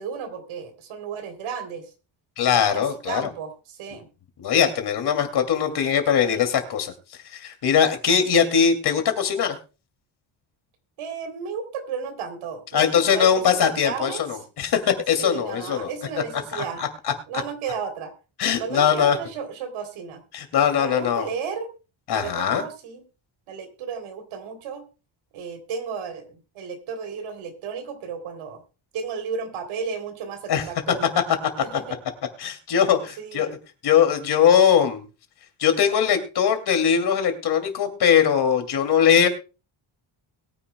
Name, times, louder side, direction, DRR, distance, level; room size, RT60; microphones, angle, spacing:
voice 1, 0.0-1.9 2.7-4.1 11.0-14.4 15.2-16.8 17.3-18.1 18.6-20.2 20.7-21.7 22.1-23.0 23.5-24.8 25.3-28.6 28.9-31.1 31.6-32.0 33.2-33.5, right 6 dB, 85° right, 7 dB, 3.3 m, -33 dB
voice 2, 2.4-3.3 4.4-6.9 7.2-9.6 12.7-14.3 14.6-15.9 16.5-16.9 18.4-19.2 20.3-21.3 22.1-22.6 30.5-30.6 32.4-33.5 33.8-35.0 35.6-39.3, left 8 dB, 55° left, 7 dB, 2.6 m, -21 dB
21.5 x 9.9 x 2.2 m, 0.32 s
cardioid pair, 160°, 47 cm